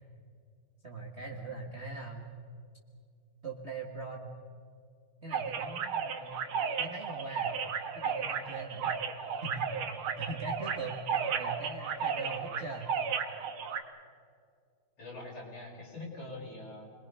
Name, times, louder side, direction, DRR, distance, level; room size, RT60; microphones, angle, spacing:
voice 1, 0.8-2.3 3.4-4.3 5.2-6.4 6.8-7.6 7.9-8.9 9.4-12.9, right 3 dB, 35° right, -1 dB, 1.8 m, -41 dB
sound 1, 5.3-13.8, right 6 dB, 85° right, 2.3 m, -34 dB
voice 2, 15.0-16.9, left 2 dB, 80° left, -5 dB, 6.8 m, -44 dB
29.5 x 22.0 x 5.6 m, 2.3 s
omnidirectional pair, 2.3 m